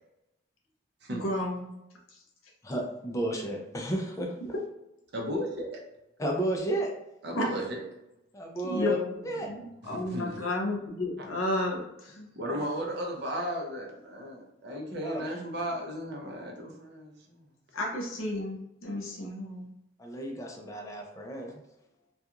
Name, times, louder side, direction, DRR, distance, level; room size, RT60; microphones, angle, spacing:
voice 1, 1.1-1.7 7.3-7.4 8.7-12.3 17.7-19.7, left 1 dB, 85° left, -2 dB, 0.7 m, -32 dB
voice 2, 2.6-4.3 6.2-6.9 8.3-9.0 9.2-9.5 14.7-14.8 15.0-15.2 20.0-21.6, right 1 dB, 15° left, 0 dB, 0.3 m, -32 dB
voice 3, 5.1-5.8 7.2-7.8 9.8-10.4 11.2-11.3 12.3-17.5, equal, 55° right, 0 dB, 0.6 m, -35 dB
2.4 x 2.3 x 2.8 m, 0.88 s
head